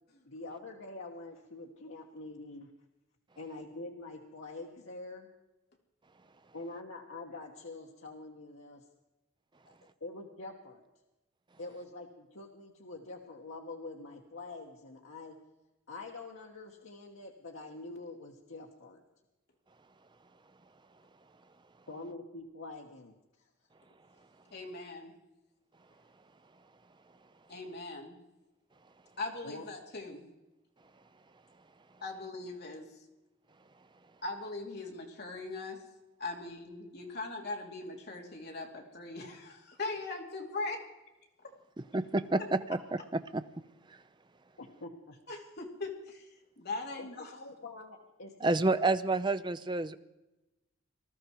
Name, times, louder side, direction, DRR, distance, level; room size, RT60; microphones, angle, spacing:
voice 1, 0.3-2.7 3.4-5.3 6.5-8.8 9.6-10.8 11.6-15.4 15.9-19.0 21.9-23.5 29.4-29.6 44.6-45.2 47.0-48.3 48.7-48.8, left 2 dB, 75° left, 0 dB, 1.4 m, -45 dB
voice 2, 24.5-25.1 27.5-28.2 29.2-30.2 32.0-32.9 34.2-35.8 36.2-40.8 41.4-41.5 45.3-46.3 46.6-47.3, left 3 dB, 50° left, 1 dB, 2.6 m, -40 dB
voice 3, 41.9-42.4 42.9-43.4 43.9-44.0 48.4-50.0, right 2 dB, 20° right, 12 dB, 0.5 m, -29 dB
19.5 x 13.0 x 4.6 m, 1.0 s
head